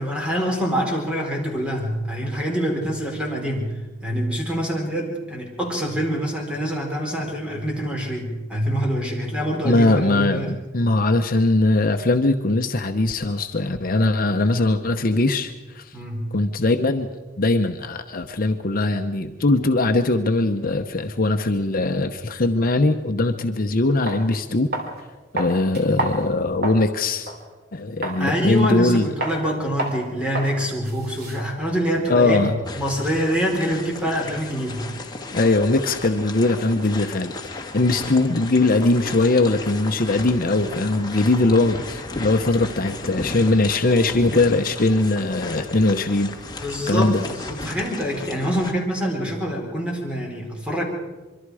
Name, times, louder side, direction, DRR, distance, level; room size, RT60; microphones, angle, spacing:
voice 1, 0.0-3.7 4.0-10.5 15.9-16.3 28.2-32.4 32.8-34.9 46.6-50.8, equal, 5° right, 0 dB, 4.3 m, -25 dB
voice 2, 9.6-15.9 16.3-17.1 17.4-24.7 25.3-27.3 27.7-29.1 32.1-32.6 35.3-46.3 46.9-47.2, left 2 dB, 50° left, 6 dB, 0.9 m, -20 dB
sound 1, 23.5-23.6 24.1-24.2 24.7-25.0 25.4-26.9 27.3-27.4 28.0-28.2 28.6-28.9 29.2-29.4 29.8-30.0 30.3-30.5 30.8-32.8, right 2 dB, 55° right, 3.3 m, -30 dB
sound 2, 32.6-48.7, left 3 dB, 20° left, 1.9 m, -35 dB
25.5 x 23.5 x 4.9 m, 1.2 s
head